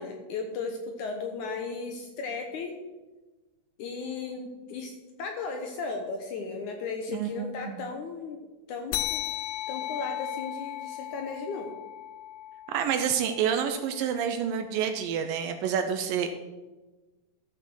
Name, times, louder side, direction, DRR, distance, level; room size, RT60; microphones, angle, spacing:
voice 1, 0.0-2.7 3.8-8.4 8.7-9.2 9.7-11.7, left 4 dB, 70° left, 4 dB, 2.0 m, -35 dB
voice 2, 7.1-7.9 12.7-16.3, right 8 dB, 75° right, 7 dB, 2.1 m, -28 dB
sound 1, 8.9-13.8, left 13 dB, 85° left, 2.6 m, -36 dB
13.0 x 6.6 x 6.3 m, 1.2 s
omnidirectional pair, 4.4 m